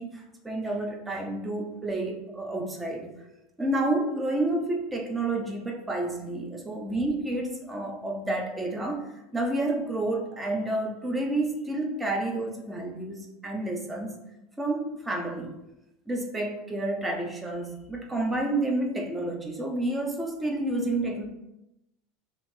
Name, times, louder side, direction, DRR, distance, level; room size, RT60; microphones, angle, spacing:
voice 1, 0.0-3.1 3.6-14.2 14.6-15.5 16.1-21.2, right 2 dB, 15° right, 1 dB, 0.8 m, -30 dB
2.8 x 2.8 x 4.4 m, 0.91 s
hypercardioid pair, 95°, 0 cm